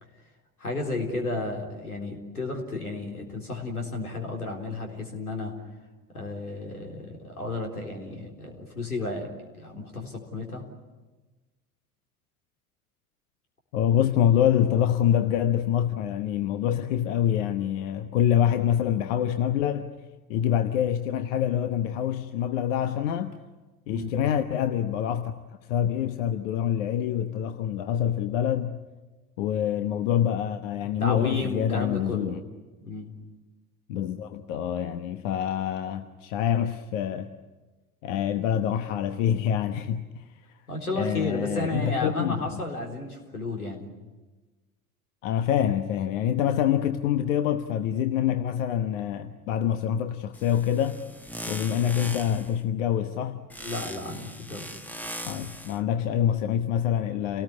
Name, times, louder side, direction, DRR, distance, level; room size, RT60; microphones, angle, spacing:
voice 1, 0.6-5.6 6.1-9.3 9.6-10.6 23.9-24.1 31.0-32.4 32.8-33.1 40.7-43.9 53.6-54.8, left 2 dB, 80° left, 4.0 m, -33 dB
voice 2, 13.7-19.9 20.3-23.4 23.9-25.3 25.7-28.8 29.4-32.4 33.9-37.3 38.0-40.2 41.0-42.6 45.2-51.0 51.5-53.4 55.2-57.4, left 10 dB, 60° left, 1.2 m, -26 dB
sound 1, 50.3-52.6 53.5-55.8, equal, 5° left, 1.3 m, -40 dB
29.0 x 19.0 x 9.7 m
figure-of-eight pair, 70°, 44 cm